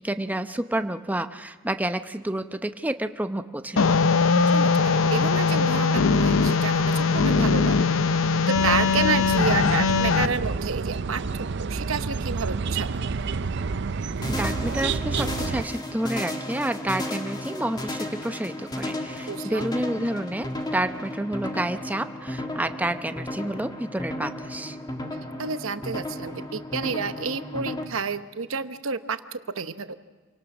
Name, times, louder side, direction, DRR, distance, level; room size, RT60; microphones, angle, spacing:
voice 1, 0.0-3.9 14.3-24.8, right 1 dB, 10° right, 8 dB, 0.8 m, -29 dB
sound 1, 3.8-10.3, left 5 dB, 85° left, 0.7 m, -21 dB
voice 2, 4.5-7.8 8.5-11.2 11.6-12.9 19.3-19.7 25.4-29.9, right 5 dB, 85° right, 11 dB, 0.9 m, -30 dB
sound 2, 8.5-15.6, right 4 dB, 60° right, 0.6 m, -29 dB
sound 3, 14.2-27.8, left 1 dB, 20° left, 1.8 m, -34 dB
27.5 x 18.0 x 6.2 m, 1.4 s
head